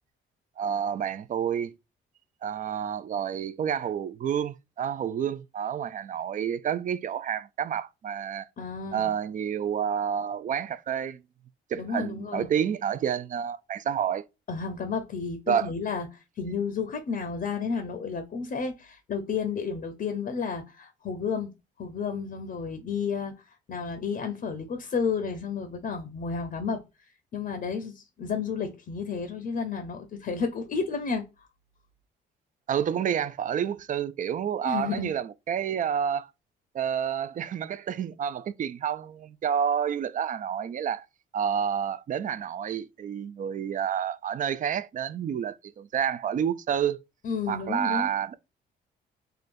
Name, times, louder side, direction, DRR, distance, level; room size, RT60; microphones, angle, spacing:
voice 1, 0.6-1.7 2.4-8.5 8.9-11.2 11.7-14.2 15.5-15.7 32.7-36.3 36.7-41.1 41.3-47.0 47.5-48.3, right 8 dB, 40° right, 0.4 m, -29 dB
voice 2, 8.6-9.1 11.8-12.5 14.5-21.5 21.8-31.5 34.6-35.1 47.2-48.1, left 5 dB, 45° left, 0.6 m, -32 dB
3.7 x 2.1 x 2.5 m
cardioid pair, 90°, 20 cm